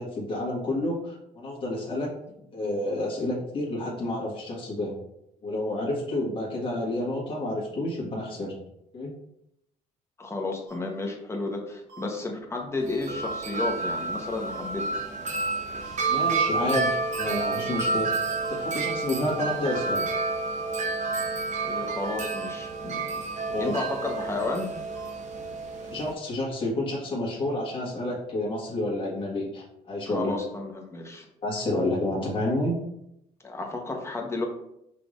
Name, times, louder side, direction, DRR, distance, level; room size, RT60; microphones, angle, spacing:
voice 1, 0.0-2.1 2.5-4.9 5.4-8.5 8.9-9.1 16.1-18.1 18.5-20.0 23.5-23.7 25.9-30.3 31.4-32.7, left 1 dB, 30° left, -5 dB, 1.6 m, -29 dB
voice 2, 10.2-14.9 21.6-22.9 23.4-24.7 30.1-31.3 33.4-34.5, left 2 dB, 15° left, 1 dB, 1.0 m, -32 dB
sound 1, 10.7-10.8 11.9-12.0 13.2-13.4 14.5-14.7 15.8-16.0 17.1-17.3 18.4-18.6 19.7-19.9 21.0-21.2 22.3-22.5 23.6-23.8 24.9-25.1, right 5 dB, 85° right, 1.4 m, -45 dB
Wind chime, 12.8-26.1, right 3 dB, 45° right, 0.8 m, -30 dB
5.8 x 3.2 x 2.5 m, 0.79 s
cardioid pair, 110°, 17 cm